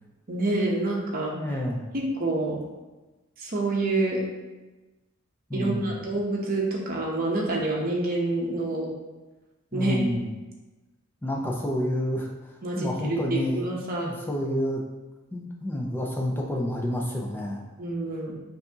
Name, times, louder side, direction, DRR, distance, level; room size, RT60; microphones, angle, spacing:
voice 1, 0.3-1.6 1.9-2.6 3.4-4.2 5.5-8.9 9.7-10.0 12.6-14.1 17.8-18.3, right 2 dB, 40° right, -2 dB, 0.8 m, -27 dB
voice 2, 1.3-1.9 5.5-6.0 9.7-10.3 11.2-12.3 12.8-13.7 14.0-14.8 15.3-17.6, equal, 10° left, -1 dB, 0.5 m, -29 dB
5.6 x 2.8 x 2.8 m, 1.1 s
head